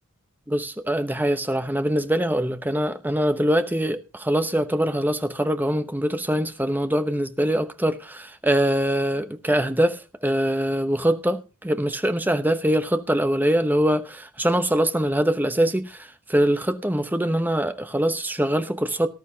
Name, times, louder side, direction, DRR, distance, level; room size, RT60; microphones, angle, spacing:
voice 1, 0.5-19.1, right 1 dB, 10° right, 0.9 m, -23 dB
19.0 x 12.0 x 2.8 m
head